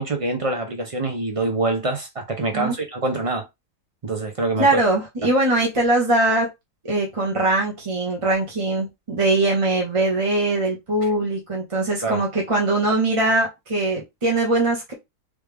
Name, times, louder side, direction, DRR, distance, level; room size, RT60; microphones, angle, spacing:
voice 1, 0.0-3.4 4.0-4.8 12.0-12.2, right 2 dB, 40° right, 0.4 m, -25 dB
voice 2, 4.6-6.5 6.8-14.9, right 2 dB, 25° right, 0.8 m, -21 dB
3.3 x 3.3 x 3.4 m
omnidirectional pair, 1.7 m